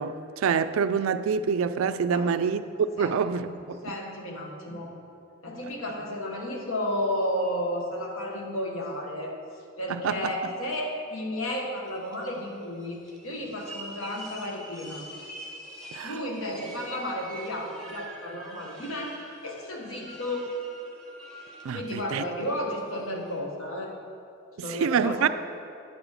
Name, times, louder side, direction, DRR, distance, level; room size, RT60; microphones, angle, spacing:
voice 1, 0.0-2.6 3.0-3.8 9.9-10.3 15.9-16.2 21.6-22.2 24.6-25.3, right 6 dB, 70° right, 0.3 m, -26 dB
voice 2, 2.1-2.5 3.0-3.2 3.5-3.6 3.8-4.9 5.4-9.4 9.8-13.0 13.2-15.1 16.0-20.5 21.7-23.9 24.6-25.3, left 1 dB, 70° left, 1.3 m, -33 dB
sound 1, 11.8-23.4, right 1 dB, 5° left, 0.8 m, -46 dB
9.2 x 5.0 x 6.5 m
head